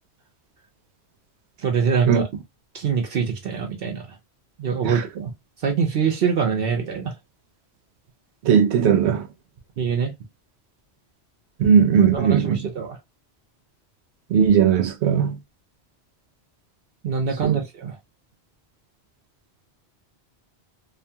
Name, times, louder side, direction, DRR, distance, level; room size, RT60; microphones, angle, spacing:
voice 1, 1.6-2.3 2.7-4.0 4.6-5.3 5.6-7.1 9.8-10.1 12.1-13.0 17.0-18.0, right 6 dB, 65° right, 0.8 m, -24 dB
voice 2, 8.4-9.3 11.6-12.6 14.3-15.3 17.4-17.6, right 7 dB, 90° right, 0.9 m, -18 dB
2.5 x 2.3 x 2.6 m
omnidirectional pair, 1.1 m